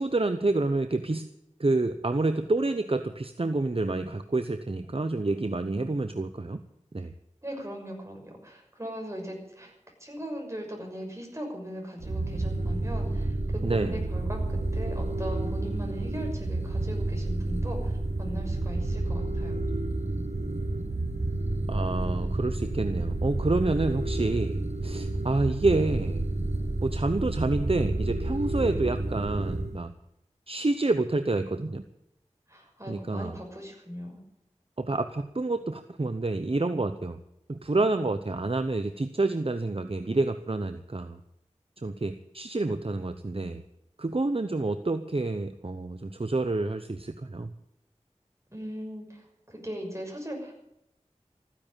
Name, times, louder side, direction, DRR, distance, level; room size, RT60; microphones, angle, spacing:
voice 1, 0.0-1.3 1.6-6.6 6.9-7.1 13.6-14.0 21.7-26.3 26.8-29.9 30.5-31.8 32.9-33.4 34.8-37.2 37.5-41.2 41.8-43.6 44.0-47.5, right 2 dB, 50° right, 9 dB, 0.9 m, -28 dB
voice 2, 7.4-9.7 10.0-19.6 32.5-34.2 48.5-50.5, equal, 25° right, 1 dB, 6.1 m, -39 dB
sound 1, 12.0-29.8, right 2 dB, 65° right, 1.3 m, -30 dB
15.0 x 10.0 x 9.0 m, 0.81 s
wide cardioid pair, 45°, 12 cm